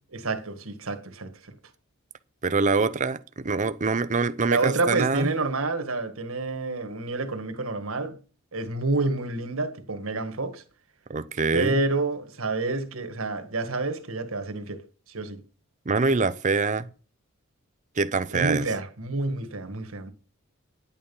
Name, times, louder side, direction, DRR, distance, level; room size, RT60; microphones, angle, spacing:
voice 1, 0.1-1.3 4.4-8.2 8.5-10.6 11.5-15.4 18.3-20.1, right 3 dB, 70° right, 1.7 m, -28 dB
voice 2, 2.4-5.4 11.1-11.8 15.9-16.9 18.0-18.7, right 4 dB, 35° right, 0.6 m, -25 dB
10.5 x 8.9 x 5.5 m
head